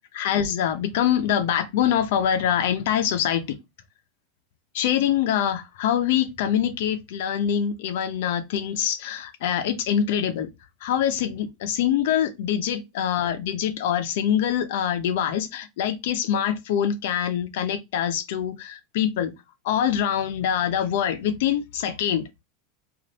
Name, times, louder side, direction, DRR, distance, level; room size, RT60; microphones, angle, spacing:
voice 1, 0.1-3.4 4.7-10.5 10.8-19.3 19.7-22.2, left 9 dB, 75° left, 0.6 m, -24 dB
2.8 x 2.5 x 3.0 m
supercardioid pair, 145°, 0 cm